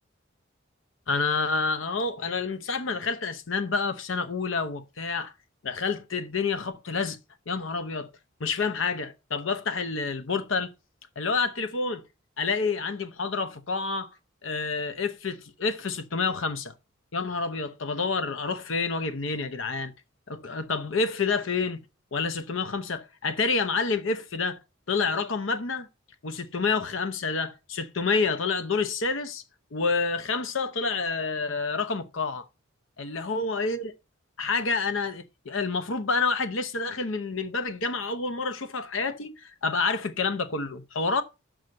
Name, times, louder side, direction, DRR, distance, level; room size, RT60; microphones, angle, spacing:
voice 1, 1.1-5.3 5.6-7.2 7.5-8.1 8.4-10.7 11.2-12.0 12.4-14.1 14.4-16.7 17.1-19.9 20.3-21.8 22.1-24.6 24.9-25.9 26.2-29.4 29.7-32.4 33.0-33.9 34.4-41.2, left 4 dB, 75° left, 0.8 m, -28 dB
6.4 x 6.2 x 5.2 m
head